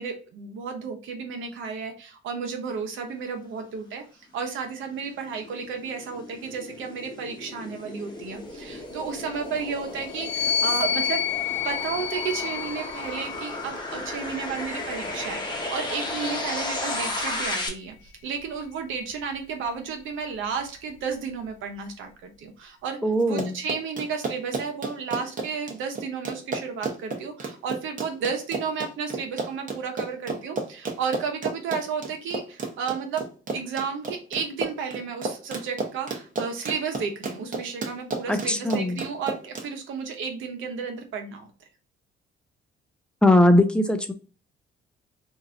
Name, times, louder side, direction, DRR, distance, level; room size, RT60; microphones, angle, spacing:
voice 1, 0.0-4.0 4.3-11.2 11.6-33.2 33.5-41.5, right 6 dB, 80° right, 4 dB, 0.9 m, -32 dB
sound 1, 4.5-17.7, left 2 dB, 20° left, 0.9 m, -34 dB
sound 2, 10.1-13.7 14.5-16.1, left 7 dB, 80° left, 0.5 m, -30 dB
voice 2, 23.0-23.5 38.3-39.0 43.2-44.1, left 1 dB, 5° left, 7 dB, 0.5 m, -20 dB
Run, 23.2-39.7, right 3 dB, 40° right, 0.8 m, -32 dB
3.0 x 2.6 x 2.5 m, 0.36 s
cardioid pair, 90°, 20 cm